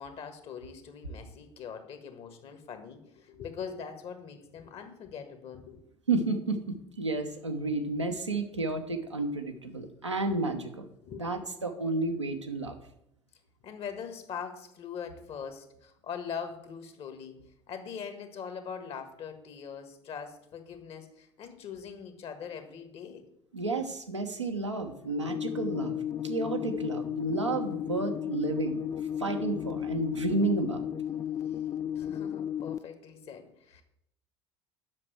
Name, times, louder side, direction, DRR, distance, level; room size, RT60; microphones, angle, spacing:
voice 1, 0.0-5.8 11.0-11.2 13.6-23.2 31.9-33.8, left 7 dB, 40° left, 8 dB, 1.5 m, -42 dB
voice 2, 6.1-6.6 7.0-10.9 11.2-12.8 23.5-26.0 26.2-28.9 29.2-30.9, right 3 dB, 85° right, 3 dB, 0.9 m, -31 dB
sound 1, 25.3-32.8, left 9 dB, 20° left, 0.4 m, -34 dB
7.6 x 5.9 x 7.8 m, 0.78 s
figure-of-eight pair, 65°, 15 cm